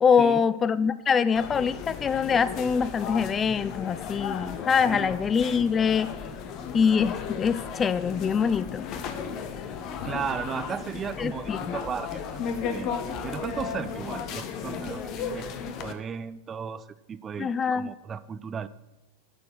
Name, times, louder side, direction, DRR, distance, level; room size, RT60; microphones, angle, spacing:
voice 1, 0.0-6.1 6.7-8.8 11.2-11.8 17.4-17.9, left 6 dB, 20° left, 16 dB, 0.4 m, -24 dB
sound 1, 1.4-15.9, left 7 dB, 40° left, 1.2 m, -35 dB
voice 2, 10.0-12.9 13.2-15.4 15.8-18.7, right 7 dB, 20° right, 14 dB, 0.6 m, -35 dB
11.0 x 6.9 x 8.0 m, 1.1 s
figure-of-eight pair, 90°, 0 cm